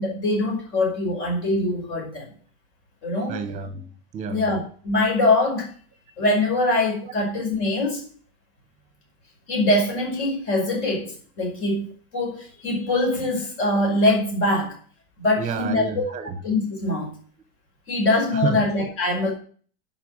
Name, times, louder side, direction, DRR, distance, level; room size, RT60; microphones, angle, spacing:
voice 1, 0.0-2.3 3.0-3.4 4.3-5.7 6.2-8.0 9.5-14.8 15.2-16.0 16.4-17.1 17.9-19.3, left 2 dB, 40° left, 0 dB, 5.3 m, -23 dB
voice 2, 3.3-4.4 15.4-16.3 18.3-18.6, right 6 dB, 20° right, 10 dB, 1.4 m, -29 dB
11.5 x 5.8 x 7.4 m, 0.44 s
supercardioid pair, 175°, 34 cm